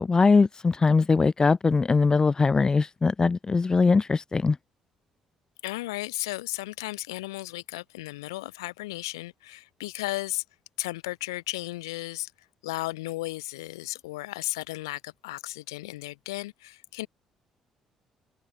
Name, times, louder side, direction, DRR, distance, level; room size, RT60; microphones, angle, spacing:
voice 1, 0.0-4.6, left 4 dB, 30° left, 1.3 m, -21 dB
voice 2, 5.6-10.4 10.8-12.3 12.6-17.1, left 19 dB, 85° left, 3.3 m, -34 dB
hypercardioid pair, 50°, 2 cm